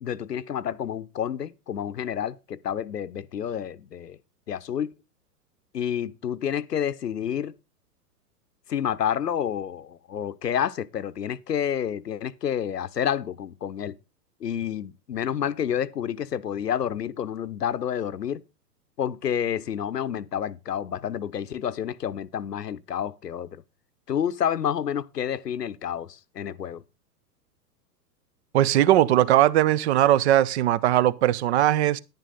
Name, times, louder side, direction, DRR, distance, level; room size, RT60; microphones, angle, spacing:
voice 1, 0.0-4.2 4.5-4.9 5.7-7.6 8.7-14.0 14.4-18.4 19.0-23.6 24.1-26.8, left 9 dB, 75° left, 0.8 m, -29 dB
voice 2, 28.5-32.0, right 13 dB, 45° right, 0.8 m, -20 dB
10.5 x 10.5 x 3.9 m
figure-of-eight pair, 105°, 48 cm